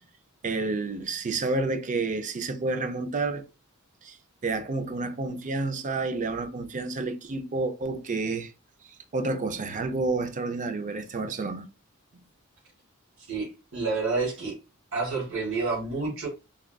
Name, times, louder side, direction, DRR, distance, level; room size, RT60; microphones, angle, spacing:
voice 1, 0.4-3.4 4.0-4.2 4.4-8.5 8.8-11.7, right 3 dB, 35° right, 0.5 m, -30 dB
voice 2, 13.3-14.5 14.9-16.3, right 3 dB, 60° right, 1.6 m, -29 dB
3.4 x 2.4 x 2.2 m
head